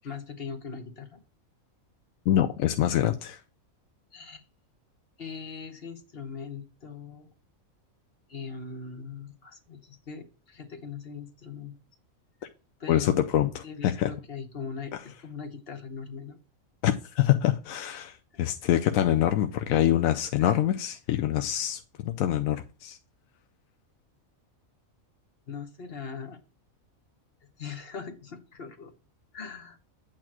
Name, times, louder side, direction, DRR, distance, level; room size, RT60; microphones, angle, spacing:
voice 1, 0.0-1.2 4.1-4.4 5.2-7.3 8.3-11.7 12.8-13.2 13.6-16.4 18.4-18.6 20.4-20.6 25.5-26.4 27.6-28.9 29.3-29.8, left 5 dB, 50° left, 1.2 m, -40 dB
voice 2, 2.3-3.4 12.9-14.1 16.8-23.0, left 11 dB, 80° left, 1.0 m, -25 dB
8.7 x 3.0 x 6.0 m
omnidirectional pair, 1.4 m